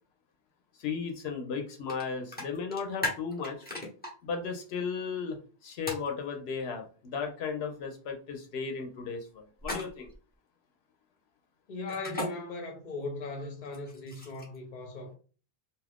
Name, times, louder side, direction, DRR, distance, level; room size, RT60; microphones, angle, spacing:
voice 1, 0.8-3.6 4.2-5.4 5.6-10.1, left 5 dB, 85° left, 0.9 m, -35 dB
sound 1, 1.9-2.0 2.3-4.1 5.9-6.1 9.6-10.1 11.9-12.3 13.6-14.6, left 2 dB, 10° left, 0.7 m, -36 dB
voice 2, 11.7-15.2, left 2 dB, 50° left, 0.8 m, -38 dB
2.6 x 2.4 x 3.3 m
omnidirectional pair, 1.0 m